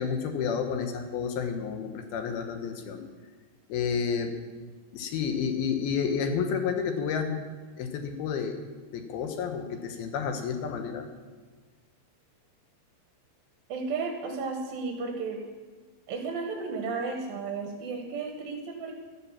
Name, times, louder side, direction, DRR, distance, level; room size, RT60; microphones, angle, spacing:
voice 1, 0.0-3.0 3.7-4.3 4.9-7.4 7.8-11.1, left 6 dB, 70° left, 6 dB, 2.7 m, -30 dB
voice 2, 13.7-15.4 16.1-18.9, right 4 dB, 65° right, 2 dB, 2.8 m, -33 dB
12.5 x 11.5 x 7.5 m, 1.4 s
omnidirectional pair, 5.1 m